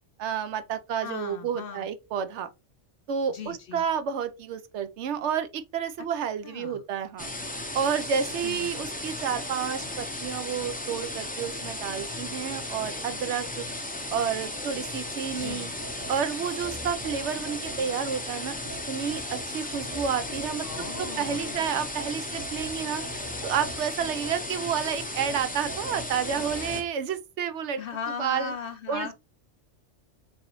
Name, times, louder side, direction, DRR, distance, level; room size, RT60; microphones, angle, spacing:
voice 1, 0.2-2.5 3.1-7.3 7.7-13.6 14.1-15.7 16.1-18.5 18.9-20.9 21.2-27.8 28.2-28.5 28.9-29.1, right 7 dB, 75° right, 0.9 m, -30 dB
voice 2, 1.0-1.9 3.3-3.9 6.4-6.8 8.4-9.0 15.3-15.7 20.6-21.7 27.8-29.1, left 6 dB, 60° left, 0.6 m, -38 dB
sound 1, 7.2-26.8, left 1 dB, 10° left, 0.5 m, -35 dB
sound 2, 15.4-18.2 18.7-21.5 22.0-24.8 25.3-26.9, right 2 dB, 35° left, 0.9 m, -43 dB
4.0 x 3.9 x 2.9 m
omnidirectional pair, 1.3 m